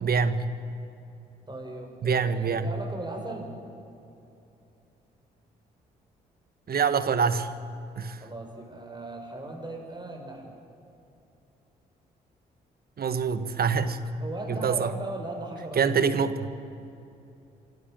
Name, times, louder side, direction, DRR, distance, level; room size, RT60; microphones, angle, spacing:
voice 1, 0.0-0.5 2.0-2.7 6.7-7.5 8.0-8.2 13.0-14.0 14.5-14.9 15.7-16.5, right 6 dB, 50° right, 12 dB, 1.5 m, -25 dB
voice 2, 1.5-3.5 8.2-10.5 14.2-15.8, right 2 dB, 20° right, 2 dB, 6.6 m, -37 dB
27.5 x 12.5 x 9.1 m, 2.7 s
hypercardioid pair, 45°, 20 cm